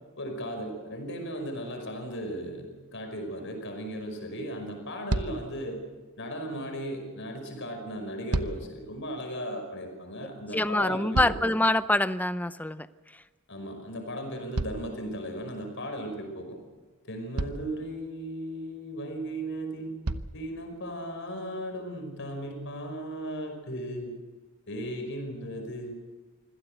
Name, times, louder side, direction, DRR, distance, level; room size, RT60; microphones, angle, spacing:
voice 1, 0.2-5.8 6.2-11.5 13.5-16.6 17.0-20.0 20.3-24.2 24.7-25.9, equal, 55° left, 4 dB, 5.4 m, -36 dB
sound 1, 2.8-2.9 4.2-4.3 4.7-4.8 5.1-5.6 7.9-8.8 10.7-11.8 14.5-15.5 16.7-16.8 17.3-17.8 19.2-19.3 20.0-20.5 21.3-21.4, right 2 dB, 90° right, 0.9 m, -33 dB
voice 2, 10.5-12.9, left 1 dB, 5° left, 14 dB, 0.6 m, -25 dB
25.0 x 17.0 x 8.0 m, 1.3 s
head